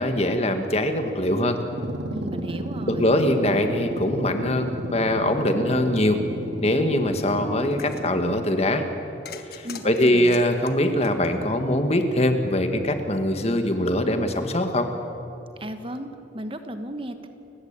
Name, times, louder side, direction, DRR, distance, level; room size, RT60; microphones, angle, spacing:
voice 1, 0.0-1.6 2.9-6.2 6.6-8.9 9.5-14.9, left 1 dB, 35° left, 6 dB, 1.8 m, -22 dB
sound 1, 1.6-8.9, right 1 dB, 65° right, 2.0 m, -33 dB
voice 2, 2.1-3.2 9.6-10.4 15.6-17.3, right 1 dB, 30° right, 8 dB, 1.2 m, -35 dB
sound 2, 7.6-8.1 9.3-11.8, left 5 dB, 55° left, 1.6 m, -42 dB
29.5 x 15.5 x 8.9 m, 2.8 s
head